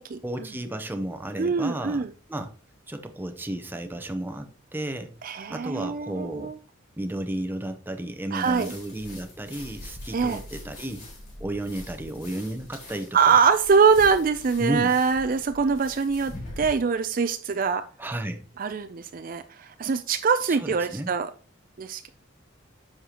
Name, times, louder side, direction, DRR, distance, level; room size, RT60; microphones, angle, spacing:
voice 1, 0.2-2.5 2.9-5.2 5.5-6.5 7.0-11.1 11.4-13.4 14.6-14.9 18.0-18.5 20.5-21.1, right 1 dB, 10° right, 0.7 m, -33 dB
voice 2, 1.4-2.1 5.2-6.5 8.3-8.7 10.1-10.4 13.1-17.8 18.6-21.3 21.8-22.1, right 5 dB, 45° right, 0.4 m, -23 dB
sound 1, 8.4-16.7, left 1 dB, 50° left, 4.3 m, -43 dB
10.0 x 6.5 x 2.9 m
head